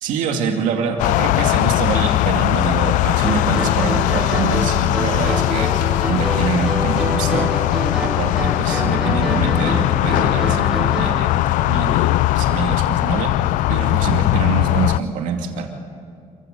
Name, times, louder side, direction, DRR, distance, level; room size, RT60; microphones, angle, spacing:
voice 1, 0.0-7.5 8.2-13.3 13.7-15.7, right 6 dB, 80° right, 3 dB, 2.4 m, -25 dB
sound 1, 1.0-15.0, left 17 dB, 80° left, 0.4 m, -19 dB
sound 2, 3.2-11.2, right 1 dB, 5° right, 4.3 m, -27 dB
26.5 x 15.5 x 6.7 m, 2.4 s
cardioid pair, 135°, 13 cm